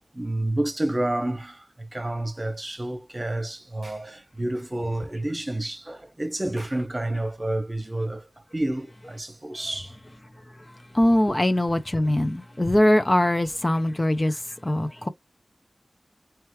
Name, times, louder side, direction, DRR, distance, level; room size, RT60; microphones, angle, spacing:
voice 1, 0.1-8.3 8.5-10.0 11.3-11.4, right 1 dB, 30° right, 1.2 m, -29 dB
voice 2, 10.9-15.1, left 1 dB, 30° left, 0.6 m, -22 dB
4.6 x 3.0 x 3.1 m
wide cardioid pair, 75°, 0 cm